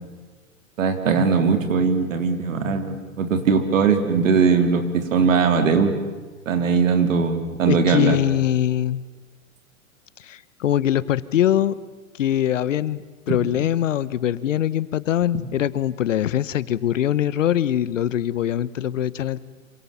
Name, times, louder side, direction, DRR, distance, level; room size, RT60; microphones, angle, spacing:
voice 1, 0.8-5.9 6.5-8.2, right 5 dB, 65° right, 8 dB, 3.9 m, -20 dB
voice 2, 7.7-9.0 10.2-11.8 12.2-19.4, left 11 dB, 65° left, 18 dB, 1.2 m, -22 dB
27.5 x 25.5 x 7.2 m, 1.4 s
hypercardioid pair, 125°, 41 cm